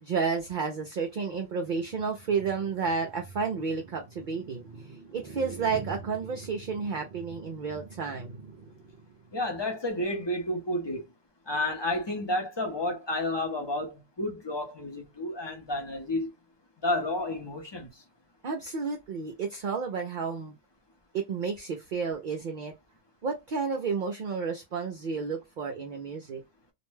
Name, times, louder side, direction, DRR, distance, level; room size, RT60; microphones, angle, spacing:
voice 1, 0.0-8.8 18.4-20.5 21.1-22.7 23.2-26.4, right 5 dB, 55° right, 0.5 m, -31 dB
voice 2, 9.3-11.0 11.5-16.3 16.8-17.9, left 1 dB, 30° left, 0.5 m, -31 dB
2.5 x 2.1 x 3.1 m
omnidirectional pair, 1.3 m